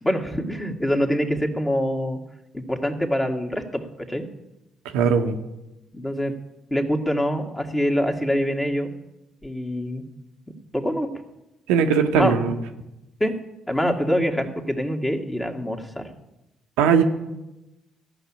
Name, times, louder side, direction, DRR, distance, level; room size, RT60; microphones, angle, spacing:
voice 1, 0.0-2.2 2.5-3.8 4.1-4.2 5.9-6.3 6.7-8.9 9.4-10.0 10.7-11.1 12.1-12.3 13.2-13.3 13.7-16.1, equal, 15° left, 3 dB, 2.0 m, -24 dB
voice 2, 4.9-5.4 11.7-12.6 16.8-17.0, right 6 dB, 85° right, 4 dB, 0.9 m, -19 dB
13.5 x 5.9 x 8.7 m, 0.96 s
hypercardioid pair, 55°, 0 cm